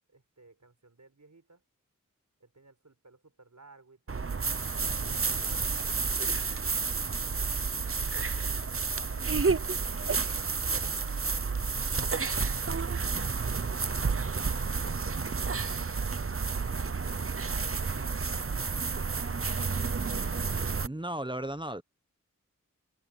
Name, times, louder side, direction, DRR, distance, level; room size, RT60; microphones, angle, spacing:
voice 1, 0.1-1.6 2.4-4.3 4.9-11.3, right 3 dB, 60° right, 5.0 m, -58 dB
sound 1, 4.1-20.9, right 4 dB, 45° right, 0.9 m, -30 dB
voice 2, 20.8-21.8, right 1 dB, 15° right, 1.1 m, -35 dB
open air
wide cardioid pair, 40°, 32 cm